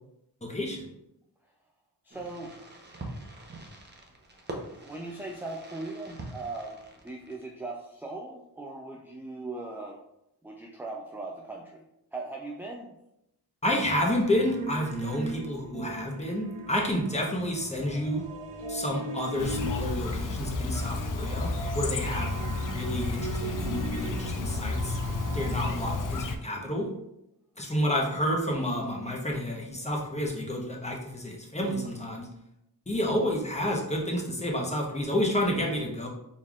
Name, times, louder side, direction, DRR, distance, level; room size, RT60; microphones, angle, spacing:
voice 1, 0.4-0.9 13.6-18.2 18.7-22.3 22.7-25.0 25.3-26.9 27.6-32.3 32.9-36.1, left 1 dB, 15° left, -1 dB, 0.9 m, -30 dB
voice 2, 2.0-2.6 4.8-10.0 10.4-11.8 12.1-13.0, right 2 dB, 5° right, 0 dB, 0.3 m, -39 dB
Fireworks, 2.1-7.7, right 2 dB, 25° right, 0.7 m, -44 dB
sound 1, 14.2-26.1, right 3 dB, 80° right, 0.8 m, -39 dB
Chirp tweet, 19.4-26.4, left 3 dB, 50° left, 0.5 m, -32 dB
4.2 x 3.6 x 2.4 m, 0.84 s
cardioid pair, 75°, 42 cm